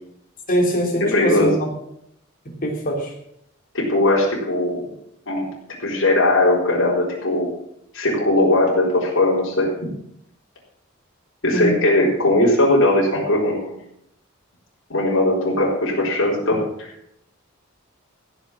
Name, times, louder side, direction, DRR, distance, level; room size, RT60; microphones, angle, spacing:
voice 1, 0.5-1.7 2.6-3.1 11.5-11.7, equal, 45° left, 0 dB, 3.5 m, -22 dB
voice 2, 1.1-1.5 3.7-4.8 5.3-5.5 5.8-7.5 7.9-9.9 11.4-13.8 14.9-16.9, left 1 dB, 65° left, -5 dB, 4.2 m, -19 dB
16.0 x 6.9 x 7.5 m, 0.74 s
head